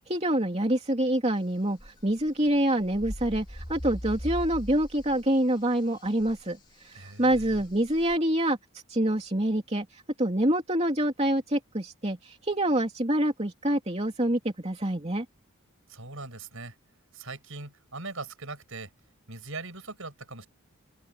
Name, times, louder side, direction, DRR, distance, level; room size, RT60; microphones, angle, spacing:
voice 1, 0.1-6.6 6.8-8.6 8.9-9.9 10.2-15.2, right 1 dB, 30° right, 2.9 m, -26 dB
sound 1, 1.8-2.6 2.8-5.3 5.6-6.4 7.3-8.2, equal, 20° left, 3.1 m, -39 dB
voice 2, 6.9-7.6 15.9-16.7 17.1-18.9 19.3-20.5, right 3 dB, 65° right, 6.5 m, -40 dB
open air
head